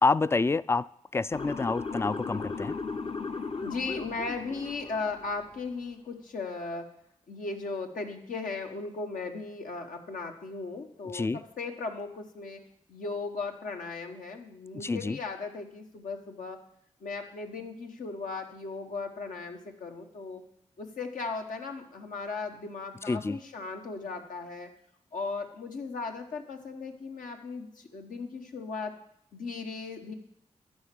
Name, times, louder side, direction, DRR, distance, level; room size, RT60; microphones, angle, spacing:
voice 1, 0.0-2.8 11.1-11.4 14.8-15.2 23.1-23.4, left 3 dB, 20° left, 0.3 m, -28 dB
Motor vehicle (road) / Siren, 1.3-5.5, left 4 dB, 45° left, 0.8 m, -36 dB
voice 2, 3.6-6.9 7.3-12.6 12.9-16.6 17.0-20.4 20.8-24.7 25.1-28.9 29.3-30.1, left 4 dB, 75° left, 1.2 m, -37 dB
12.0 x 4.5 x 7.6 m
supercardioid pair, 40°, 14 cm